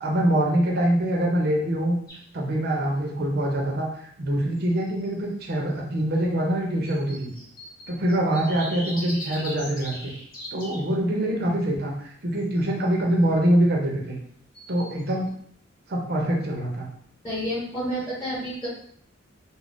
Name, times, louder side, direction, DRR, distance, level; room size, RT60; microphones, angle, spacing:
voice 1, 0.0-2.0 2.3-3.9 4.2-7.3 7.9-10.1 10.5-14.2 14.7-15.3 15.9-16.9, right 1 dB, 50° right, 0 dB, 0.6 m, -24 dB
sound 1, 2.1-2.2 4.6-5.1 6.8-10.8 12.3-12.9 14.5-15.3, left 1 dB, 45° left, 1.0 m, -39 dB
voice 2, 17.2-18.7, equal, 10° left, -10 dB, 1.1 m, -29 dB
2.5 x 2.0 x 3.4 m, 0.63 s
head